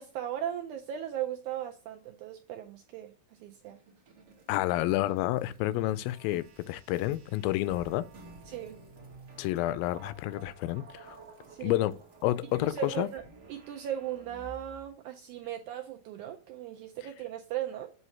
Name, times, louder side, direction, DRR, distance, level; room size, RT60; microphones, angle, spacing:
voice 1, 0.0-3.1 3.4-3.8 8.5-8.8 11.5-11.9 12.6-13.2 13.5-17.9, right 11 dB, 80° right, 1.8 m, -37 dB
sound 1, 3.6-14.9, right 3 dB, 55° right, 1.2 m, -52 dB
voice 2, 4.5-8.1 9.4-11.2 11.6-11.9 12.2-13.1, left 15 dB, 90° left, 2.3 m, -29 dB
7.9 x 2.7 x 5.7 m
omnidirectional pair, 4.0 m